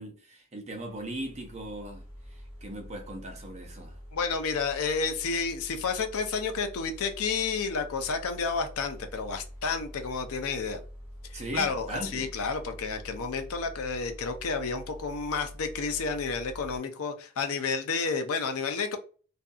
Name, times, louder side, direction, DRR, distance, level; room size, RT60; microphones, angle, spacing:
voice 1, 0.0-2.0 2.3-4.0 11.3-12.3, right 1 dB, 30° right, 0.6 m, -39 dB
sound 1, 0.7-16.8, equal, 15° left, 1.5 m, -46 dB
voice 2, 4.1-10.8 11.3-19.0, left 5 dB, 70° left, 0.5 m, -31 dB
2.6 x 2.5 x 2.3 m
head